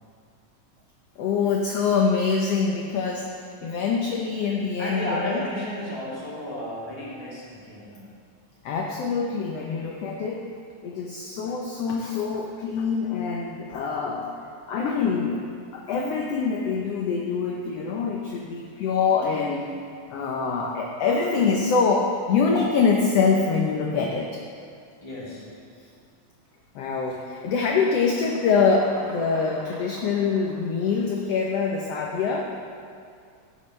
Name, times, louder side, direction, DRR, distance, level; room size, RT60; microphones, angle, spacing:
voice 1, 1.2-5.4 8.6-10.4 10.8-14.3 14.7-19.6 20.1-24.3 26.7-32.5, left 5 dB, 70° left, 0 dB, 1.5 m, -24 dB
voice 2, 4.8-8.0 25.0-25.5, left 1 dB, 10° left, -7 dB, 2.4 m, -33 dB
sound 1, 26.4-26.6 26.9-31.9, right 1 dB, 30° right, 1.9 m, -45 dB
15.0 x 11.5 x 3.3 m, 2.3 s
omnidirectional pair, 3.8 m